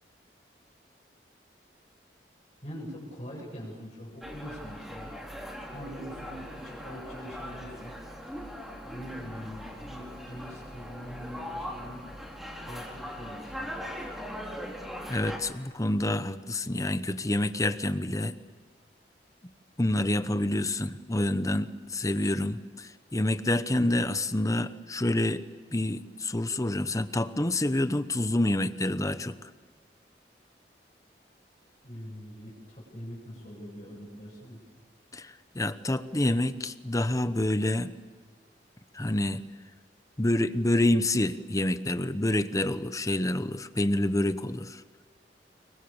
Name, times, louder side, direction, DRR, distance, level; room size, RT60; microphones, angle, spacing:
voice 1, 2.6-7.9 8.8-12.0 12.6-13.8 31.8-34.6, equal, 40° left, -3 dB, 7.9 m, -43 dB
sound 1, 4.2-15.4, equal, ahead, 4.1 m, -40 dB
voice 2, 15.1-18.4 19.8-25.4 25.7-29.4 35.1-37.9 38.9-39.4 40.2-44.8, left 1 dB, 20° left, 12 dB, 1.0 m, -27 dB
28.5 x 23.0 x 7.1 m, 1.5 s
head